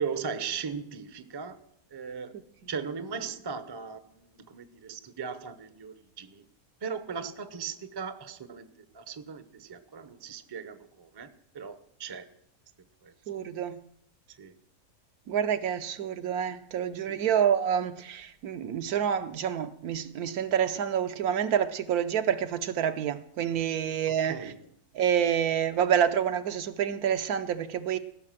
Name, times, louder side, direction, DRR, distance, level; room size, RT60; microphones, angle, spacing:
voice 1, 0.0-1.6 1.9-2.3 2.7-6.5 6.8-8.7 8.9-12.3 13.0-13.1 14.4-14.6 17.0-17.2 24.2-24.6, right 6 dB, 30° right, 0.5 m, -38 dB
voice 2, 13.3-13.8 15.3-24.5 24.9-28.0, right 9 dB, 75° right, 1.3 m, -28 dB
16.5 x 6.6 x 7.5 m
omnidirectional pair, 1.6 m